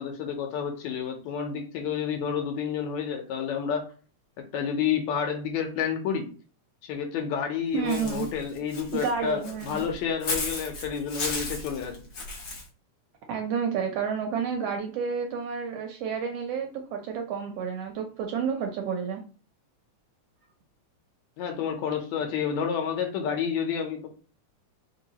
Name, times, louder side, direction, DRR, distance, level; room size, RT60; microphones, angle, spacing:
voice 1, 0.0-3.8 4.5-6.3 6.8-11.9 21.4-24.1, left 7 dB, 75° left, 3 dB, 2.1 m, -30 dB
voice 2, 7.7-8.3 8.9-9.8 13.3-19.2, right 6 dB, 75° right, 4 dB, 1.4 m, -30 dB
Walk footsteps / Bird, 7.9-12.6, left 3 dB, 55° left, 1.6 m, -35 dB
4.6 x 2.7 x 4.1 m, 0.37 s
omnidirectional pair, 3.4 m